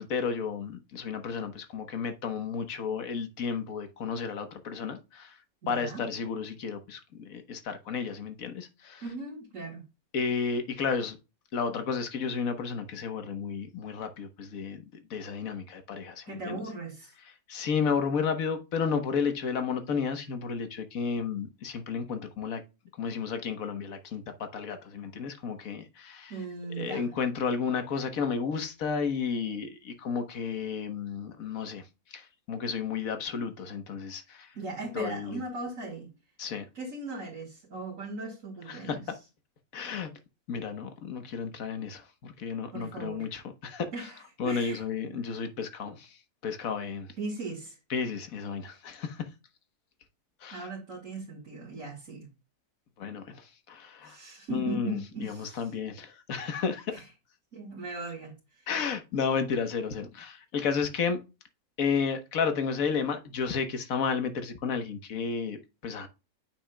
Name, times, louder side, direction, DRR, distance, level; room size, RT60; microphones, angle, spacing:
voice 1, 0.0-5.4 5.7-9.0 10.1-11.2 11.5-14.8 15.1-16.6 17.5-22.6 23.0-26.3 26.8-34.6 34.9-35.4 36.4-36.6 38.7-39.0 39.7-40.1 40.5-43.9 44.4-47.1 47.9-49.3 50.4-50.6 53.0-54.2 54.5-56.9 58.7-61.2 61.8-66.1, left 6 dB, 65° left, 1.6 m, -32 dB
voice 2, 5.6-6.0 9.0-9.8 16.3-17.1 26.3-27.1 34.5-36.1 36.7-39.0 42.7-43.3 43.9-45.2 47.2-47.8 50.5-52.3 54.0-55.7 56.9-57.0 57.5-58.7, right 3 dB, 55° right, 2.1 m, -38 dB
8.7 x 6.1 x 2.2 m
omnidirectional pair, 1.6 m